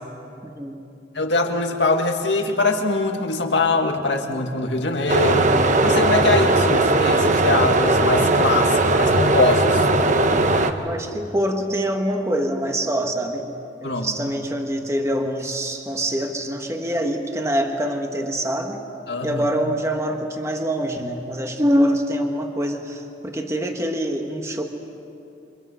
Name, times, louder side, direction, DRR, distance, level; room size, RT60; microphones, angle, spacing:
voice 1, 0.4-0.8 10.8-13.5 13.8-18.8 19.2-24.6, equal, 15° right, 4 dB, 1.5 m, -25 dB
voice 2, 1.2-5.5 5.8-9.9 13.8-14.1 19.1-19.4, left 3 dB, 75° left, 3 dB, 2.1 m, -22 dB
sound 1, 5.1-10.7, right 2 dB, 40° right, 1.1 m, -18 dB
29.5 x 25.5 x 5.7 m, 2.7 s
head